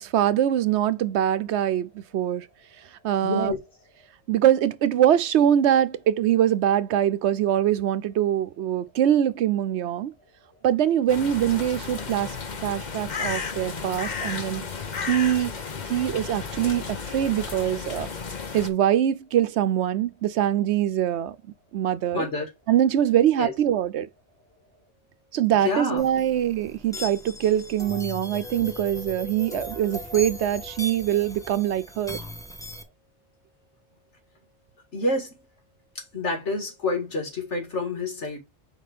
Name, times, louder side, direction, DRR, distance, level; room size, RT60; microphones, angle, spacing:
voice 1, 0.0-2.5 3.0-3.5 4.3-10.1 10.6-12.4 12.6-14.7 15.1-15.5 15.9-18.1 18.5-21.4 21.7-22.3 22.7-24.1 25.3-32.2, right 11 dB, 75° right, 0.9 m, -23 dB
voice 2, 3.2-3.6 22.1-22.5 23.4-23.5 25.6-26.0 34.9-35.3 36.1-38.4, left 2 dB, 75° left, 2.5 m, -27 dB
sound 1, 11.1-18.7, left 5 dB, 40° left, 0.9 m, -33 dB
sound 2, 26.0-32.8, left 1 dB, 5° left, 0.8 m, -38 dB
5.0 x 4.2 x 5.0 m
omnidirectional pair, 1.2 m